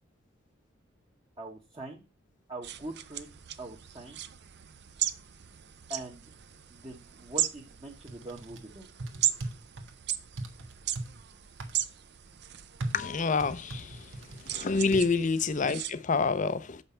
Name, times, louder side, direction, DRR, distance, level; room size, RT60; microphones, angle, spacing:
voice 1, 1.4-2.0 2.5-3.3 3.6-4.2 5.9-6.2 6.7-8.9 14.8-15.0, right 2 dB, 25° right, 1.1 m, -42 dB
sound 1, 2.6-15.9, right 12 dB, 60° right, 0.6 m, -37 dB
sound 2, 8.1-8.6 9.0-9.9 10.4-11.1 11.6-11.8 12.8-14.5 14.9-15.1, right 2 dB, 80° right, 1.3 m, -38 dB
voice 2, 12.9-14.0 14.5-16.8, left 4 dB, 40° left, 0.6 m, -27 dB
7.2 x 5.5 x 5.5 m
head